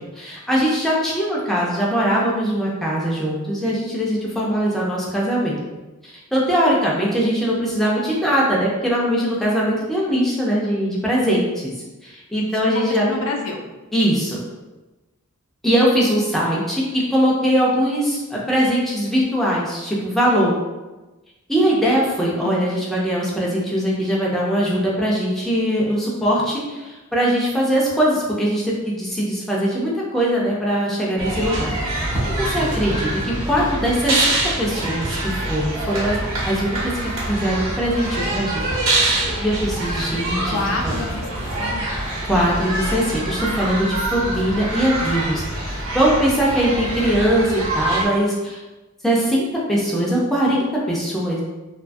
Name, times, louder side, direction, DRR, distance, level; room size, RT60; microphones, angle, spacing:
voice 1, 0.0-5.6 6.0-11.7 12.0-13.2 13.9-14.4 15.6-20.5 21.5-31.7 32.0-34.3 34.6-36.2 36.5-38.7 39.4-40.6 40.8-40.9 42.2-48.6 49.0-49.4 49.7-51.4, equal, ahead, -5 dB, 0.4 m, -21 dB
voice 2, 12.5-13.6 21.8-22.0 22.4-22.8 40.5-42.1, left 3 dB, 65° left, 2 dB, 0.4 m, -29 dB
sound 1, 31.2-48.1, right 1 dB, 75° right, 1.0 m, -25 dB
2.6 x 2.3 x 2.5 m, 1.1 s
head